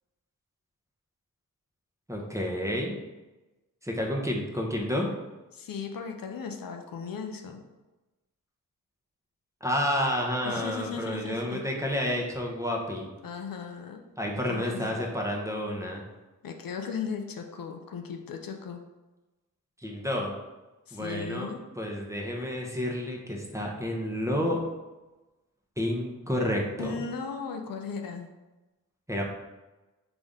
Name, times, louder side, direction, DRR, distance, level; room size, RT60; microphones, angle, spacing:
voice 1, 2.1-3.0 3.8-5.1 9.6-13.1 14.2-16.0 19.8-20.3 20.9-21.5 21.8-24.6 25.8-26.9 29.1-29.2, left 1 dB, 10° right, -1 dB, 1.0 m, -30 dB
voice 2, 5.5-7.6 10.4-11.6 13.2-14.0 14.5-15.1 16.4-18.8 20.9-21.6 26.8-28.3, left 6 dB, 70° left, 4 dB, 0.6 m, -37 dB
3.9 x 3.5 x 3.6 m, 1.1 s
cardioid pair, 55°, 36 cm